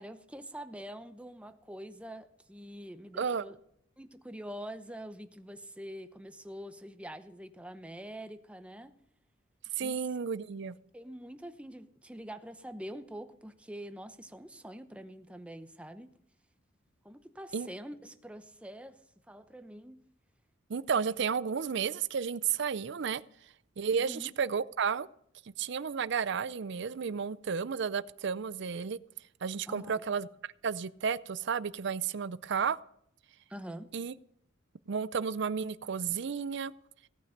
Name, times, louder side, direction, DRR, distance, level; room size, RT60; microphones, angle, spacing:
voice 1, 0.0-3.6 4.0-8.9 9.7-10.0 10.9-16.1 17.0-19.0 19.3-20.0 23.9-24.3 29.7-30.0 33.5-33.9, equal, 5° right, 9 dB, 0.8 m, -45 dB
voice 2, 9.8-10.8 17.5-17.7 20.7-23.2 23.8-25.1 25.6-29.0 29.4-30.3 30.6-32.8 33.9-34.1 34.9-36.7, right 6 dB, 60° right, 17 dB, 0.5 m, -32 dB
17.0 x 9.2 x 6.6 m, 0.69 s
head